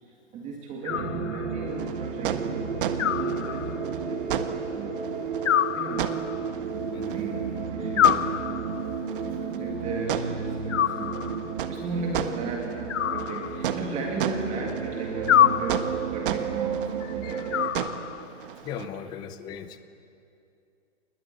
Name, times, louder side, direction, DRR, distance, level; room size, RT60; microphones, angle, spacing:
voice 1, 0.0-5.3 5.7-6.2 7.0-8.3 9.2-17.8 18.8-19.1, right 3 dB, 20° right, 1 dB, 2.1 m, -36 dB
Animal, 0.8-1.7 3.0-4.0 5.5-6.5 8.0-9.0 10.7-11.6 12.9-14.0 15.3-16.2 17.5-18.4, left 10 dB, 80° left, 0.8 m, -26 dB
sound 1, 0.9-17.7, right 6 dB, 85° right, 2.3 m, -33 dB
sound 2, 1.7-18.9, right 9 dB, 45° right, 1.5 m, -35 dB
voice 2, 17.0-17.9 18.6-19.8, left 9 dB, 10° left, 11 dB, 0.6 m, -39 dB
29.0 x 20.5 x 8.3 m, 2.6 s
hypercardioid pair, 155°, 37 cm